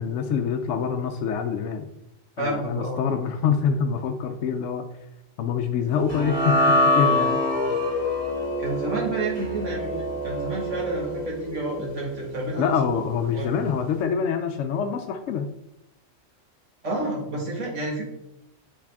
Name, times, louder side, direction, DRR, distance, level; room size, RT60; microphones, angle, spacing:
voice 1, 0.0-1.9 2.4-4.8 5.4-7.4 12.6-15.5, left 6 dB, 75° left, 5 dB, 0.9 m, -25 dB
voice 2, 2.4-3.2 8.6-12.7 13.3-13.5 16.8-18.0, right 2 dB, 70° right, -3 dB, 2.0 m, -30 dB
sound 1, 6.1-12.5, left 1 dB, 20° left, 1.6 m, -25 dB
6.5 x 4.8 x 3.5 m, 0.87 s
omnidirectional pair, 1.3 m